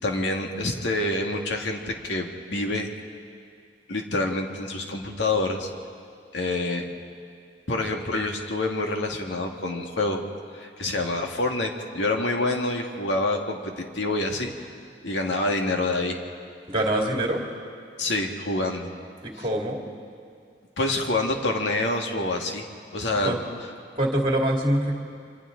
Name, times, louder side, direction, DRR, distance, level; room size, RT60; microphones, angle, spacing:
voice 1, 0.0-2.9 3.9-5.7 6.3-6.9 7.7-10.2 10.5-14.5 15.0-16.2 18.0-18.9 19.4-19.5 20.8-22.7 22.9-23.4, left 2 dB, 90° left, 2 dB, 1.9 m, -27 dB
voice 2, 16.7-17.4 19.2-19.8 23.2-23.4 24.0-24.9, right 1 dB, 30° right, 0 dB, 2.4 m, -24 dB
29.0 x 25.0 x 3.9 m, 2.2 s
head